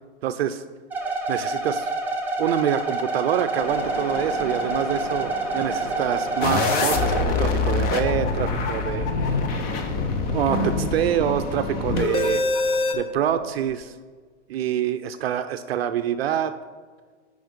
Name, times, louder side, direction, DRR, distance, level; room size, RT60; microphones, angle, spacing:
voice 1, 0.2-0.6 1.3-1.9 2.4-9.1 10.3-12.4 12.9-13.9 14.5-16.5, right 10 dB, 60° right, 10 dB, 0.5 m, -26 dB
sound 1, 0.9-7.2, right 3 dB, 5° right, 1.1 m, -27 dB
sound 2, 3.6-13.8, left 2 dB, 65° left, 1.8 m, -38 dB
sound 3, 6.4-12.9, left 3 dB, 25° left, 0.7 m, -24 dB
7.7 x 5.2 x 5.2 m, 1.5 s
hypercardioid pair, 130°, 35 cm